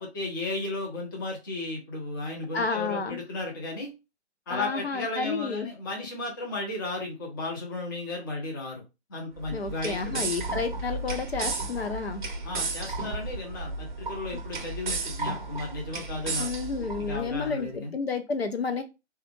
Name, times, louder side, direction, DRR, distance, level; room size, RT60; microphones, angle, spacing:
voice 1, 0.0-3.9 4.5-8.8 9.1-10.3 12.4-16.5 16.8-17.9, left 2 dB, 20° left, -1 dB, 0.6 m, -34 dB
voice 2, 2.5-3.2 4.5-5.7 9.5-12.2 14.3-14.4 16.4-18.8, left 4 dB, 65° left, 7 dB, 0.6 m, -31 dB
sound 1, 9.4-17.5, right 3 dB, 45° right, 0.6 m, -34 dB
3.3 x 2.3 x 3.1 m, 0.26 s
figure-of-eight pair, 140°, 34 cm